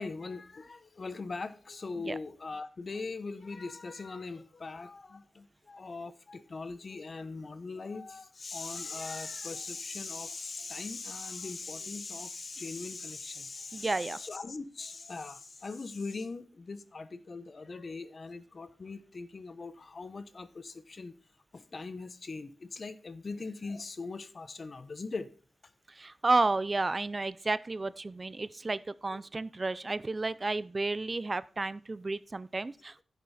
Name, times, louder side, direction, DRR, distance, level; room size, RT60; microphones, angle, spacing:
voice 1, 0.0-21.1 21.5-25.3 29.1-29.2, left 3 dB, 55° left, 1.0 m, -40 dB
voice 2, 13.7-14.2 25.9-33.0, right 3 dB, 40° right, 0.5 m, -32 dB
10.5 x 7.1 x 4.2 m
cardioid pair, 45°, 0 cm